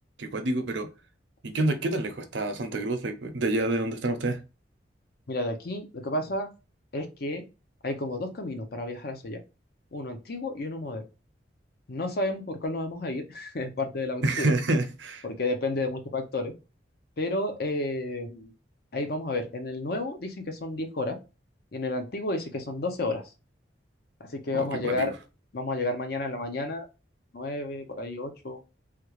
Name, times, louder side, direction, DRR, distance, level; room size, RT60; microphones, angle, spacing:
voice 1, 0.2-0.9 1.4-4.4 14.2-15.2 24.5-25.1, right 2 dB, 80° right, 0.6 m, -28 dB
voice 2, 5.3-6.5 6.9-7.5 7.8-9.4 9.9-11.0 11.9-14.6 15.2-16.5 17.2-18.5 18.9-21.2 21.7-23.2 24.2-25.1 25.5-26.9 27.3-28.6, left 2 dB, 55° left, 0.6 m, -31 dB
3.2 x 2.3 x 3.1 m
head